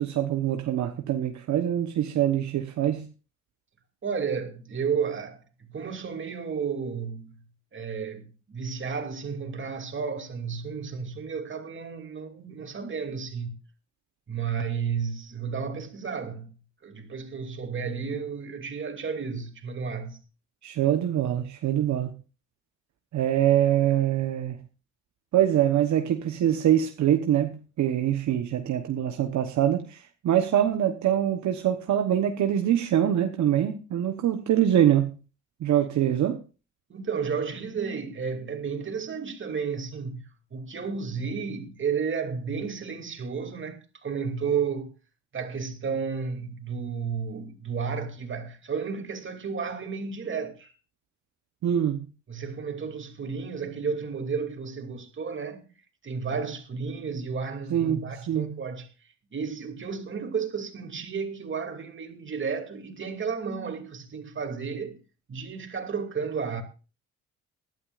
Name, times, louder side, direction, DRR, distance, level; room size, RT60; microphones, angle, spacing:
voice 1, 0.0-3.1 20.6-22.1 23.1-24.6 25.3-35.1 35.6-36.4 51.6-52.0 57.7-58.6, right 11 dB, 70° right, 1.1 m, -24 dB
voice 2, 4.0-7.4 7.7-13.6 14.3-16.5 16.8-20.2 36.9-44.9 45.3-50.7 52.3-55.7 56.0-58.9 59.3-65.0 65.3-66.6, right 6 dB, 40° right, 2.8 m, -32 dB
19.5 x 12.5 x 2.5 m
cardioid pair, 90°, 30 cm